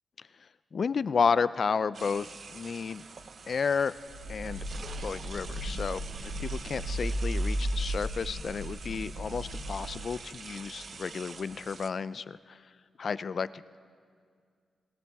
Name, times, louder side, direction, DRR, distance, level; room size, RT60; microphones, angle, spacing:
voice 1, 0.7-3.0 3.5-3.9 4.3-4.6 5.0-12.6 13.0-13.8, left 5 dB, 50° left, 16 dB, 0.4 m, -32 dB
sound 1, 1.9-11.9, right 5 dB, 50° right, 0.6 m, -46 dB
sound 2, 4.1-10.1, equal, 35° right, 2.0 m, -35 dB
20.5 x 16.5 x 3.5 m, 2.1 s
cardioid pair, 105°, 0 cm